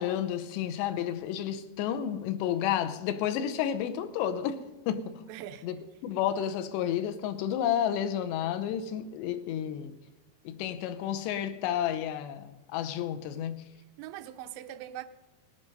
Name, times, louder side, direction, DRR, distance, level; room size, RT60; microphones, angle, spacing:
voice 1, 0.0-4.6 4.9-5.2 5.6-5.7 6.0-9.9 10.5-13.6, left 10 dB, 80° left, 2.9 m, -31 dB
voice 2, 5.3-5.7 13.8-15.1, right 12 dB, 85° right, 2.9 m, -42 dB
18.5 x 11.0 x 5.3 m
omnidirectional pair, 5.1 m